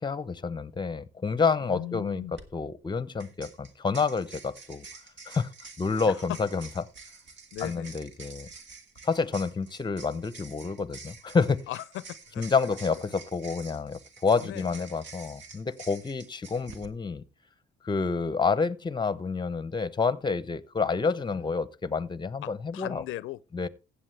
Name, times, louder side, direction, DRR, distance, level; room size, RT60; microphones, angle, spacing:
voice 1, 0.0-2.3 2.5-4.9 5.3-5.5 5.8-6.7 7.6-8.5 9.0-11.6 12.4-17.2 17.8-23.0 23.5-23.7, left 4 dB, 20° left, 0.7 m, -28 dB
voice 2, 1.6-2.3 6.0-6.4 7.5-7.9 11.7-12.8 14.4-14.8 21.2-21.5 22.4-23.4, left 15 dB, 80° left, 0.4 m, -39 dB
sound 1, 2.2-2.4 3.2-16.9, right 4 dB, 70° right, 1.8 m, -48 dB
15.5 x 8.4 x 3.3 m
cardioid pair, 90°, 20 cm